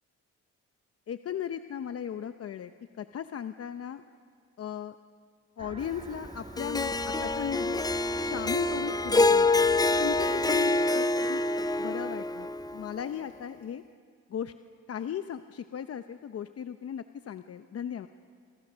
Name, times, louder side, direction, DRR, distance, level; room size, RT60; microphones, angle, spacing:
voice 1, 1.1-2.7 3.0-4.0 4.6-5.0 5.6-7.8 8.2-9.7 10.0-11.4 11.8-13.8 14.3-14.5 14.9-18.1, left 9 dB, 50° left, 9 dB, 0.8 m, -37 dB
sound 1, 5.6-10.6, right 2 dB, 20° right, 2.2 m, -44 dB
Harp, 6.6-12.9, left 2 dB, 15° left, 0.6 m, -26 dB
29.0 x 27.0 x 6.3 m, 2.3 s
cardioid pair, 90°, 30 cm